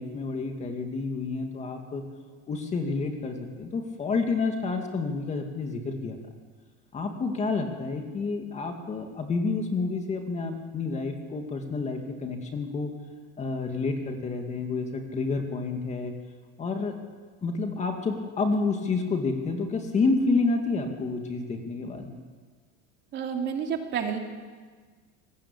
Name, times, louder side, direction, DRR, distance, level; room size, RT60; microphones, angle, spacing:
voice 1, 0.0-2.0 2.5-6.2 6.9-12.9 13.4-16.1 16.6-16.9 17.4-22.1, left 3 dB, 20° left, 4 dB, 2.4 m, -29 dB
voice 2, 23.1-24.2, right 7 dB, 35° right, 3 dB, 2.8 m, -29 dB
26.5 x 19.5 x 8.6 m, 1.5 s
cardioid pair, 165°, 33 cm